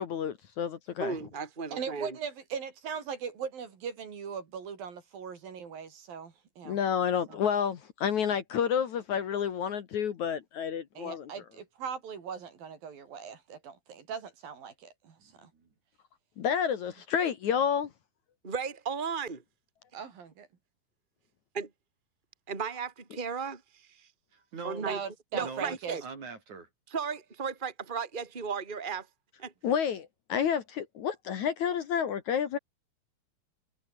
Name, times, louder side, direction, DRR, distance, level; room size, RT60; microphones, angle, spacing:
voice 1, 0.0-1.2 6.6-11.3 16.4-17.9 29.6-32.6, left 8 dB, 60° left, 2.6 m, -30 dB
voice 2, 1.0-2.2 18.4-19.4 21.5-21.7 22.5-23.6 24.6-25.0 25.3-26.0 26.9-29.1 29.4-29.5, right 5 dB, 15° right, 2.9 m, -35 dB
voice 3, 1.7-6.8 7.3-7.4 10.9-15.5 19.9-20.5 24.8-26.0, right 6 dB, 70° right, 5.1 m, -39 dB
voice 4, 15.2-15.7 24.3-24.9 25.4-25.8 26.0-26.7, right 4 dB, 50° right, 5.9 m, -43 dB
omnidirectional pair, 4.3 m